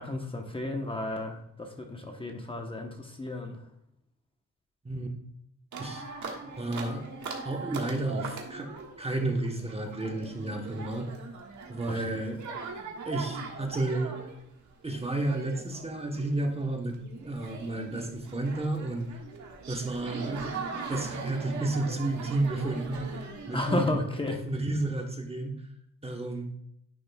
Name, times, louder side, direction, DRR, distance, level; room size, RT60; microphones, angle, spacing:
voice 1, 0.0-3.6 11.9-12.0 23.5-24.4, left 2 dB, 15° left, 3 dB, 0.9 m, -32 dB
sound 1, 5.7-23.9, right 4 dB, 65° right, 1.6 m, -41 dB
voice 2, 6.4-7.1 7.4-11.1 11.7-12.4 13.0-14.2 14.8-16.9 17.2-19.1 19.7-20.5 20.9-24.0 24.3-25.5 26.0-26.5, right 2 dB, 20° right, 2 dB, 1.1 m, -32 dB
10.5 x 6.2 x 2.3 m, 0.77 s
cardioid pair, 125°, 32 cm